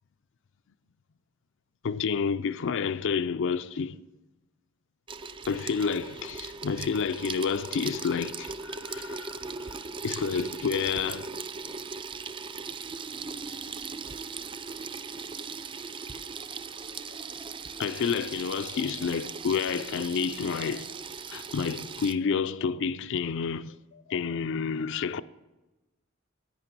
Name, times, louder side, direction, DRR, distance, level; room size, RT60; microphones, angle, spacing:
voice 1, 1.8-4.0 5.5-9.7 10.0-11.3 17.8-20.9 21.3-25.2, left 6 dB, 65° left, 0.4 m, -30 dB
Water tap faucet / Sink (filling or washing), 5.1-22.1, right 4 dB, 25° right, 0.4 m, -38 dB
11.0 x 8.8 x 6.0 m
head